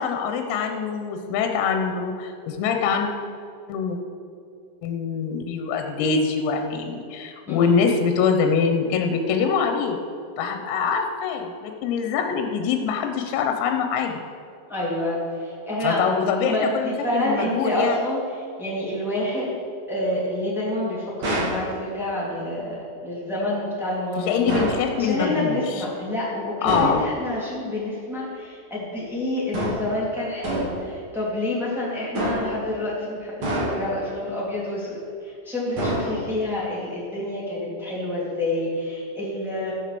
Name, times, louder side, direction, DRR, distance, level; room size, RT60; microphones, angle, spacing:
voice 1, 0.0-3.1 3.7-4.0 4.8-10.0 10.4-14.1 15.8-18.0 24.2-25.9 26.6-27.0, left 6 dB, 85° left, 5 dB, 3.6 m, -24 dB
voice 2, 14.7-19.6 19.9-24.4 25.0-39.7, left 1 dB, ahead, -8 dB, 0.6 m, -28 dB
sound 1, 21.2-21.7 24.5-24.9 26.7-27.0 29.5-29.9 30.4-30.8 32.1-32.6 33.4-34.0 35.8-36.4, right 1 dB, 40° right, 1.9 m, -26 dB
14.5 x 6.9 x 6.8 m, 2.4 s
omnidirectional pair, 6.0 m